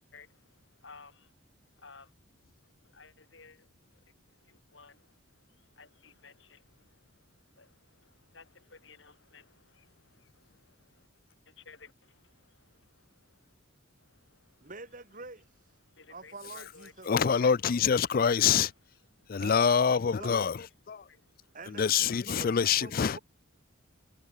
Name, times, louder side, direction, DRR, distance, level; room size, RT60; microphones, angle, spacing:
voice 1, 0.1-1.3 1.7-2.1 2.9-3.7 4.3-11.1 11.5-13.5 14.0-14.7 15.8-17.1 17.4-17.6 19.2-19.4 20.9-21.6 21.9-22.5, left 4 dB, 60° left, 4.4 m, -57 dB
voice 2, 14.6-15.4 16.1-17.4 19.4-20.5 21.5-23.2, right 3 dB, 40° right, 3.0 m, -46 dB
voice 3, 17.1-18.7 19.3-21.0 21.7-23.2, left 7 dB, 45° left, 0.4 m, -26 dB
head